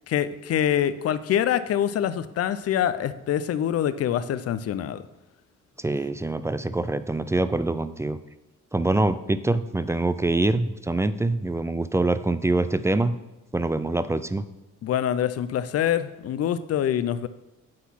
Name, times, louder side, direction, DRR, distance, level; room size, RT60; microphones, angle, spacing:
voice 1, 0.1-5.0 14.8-17.3, left 10 dB, 55° left, 14 dB, 0.5 m, -25 dB
voice 2, 5.8-8.2 8.7-13.2 13.5-14.5, right 2 dB, 10° right, 13 dB, 0.3 m, -25 dB
8.6 x 3.9 x 5.8 m, 1.0 s
cardioid pair, 90°, 30 cm